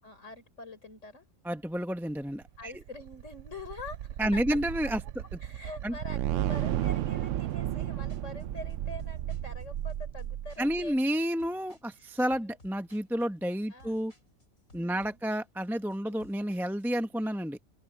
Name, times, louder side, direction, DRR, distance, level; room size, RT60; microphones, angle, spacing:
voice 1, 0.0-1.3 2.6-4.6 5.4-11.0 12.3-12.6 13.7-14.0 14.8-15.2 16.0-16.3, left 2 dB, 65° left, 5.2 m, -45 dB
voice 2, 1.4-2.7 4.2-5.0 5.8-5.9 10.6-14.1 14.7-17.6, equal, ahead, 0.8 m, -30 dB
sound 1, 2.5-10.9, right 12 dB, 70° right, 0.9 m, -33 dB
sound 2, 7.5-17.0, left 1 dB, 80° left, 7.4 m, -60 dB
open air
omnidirectional pair, 1.4 m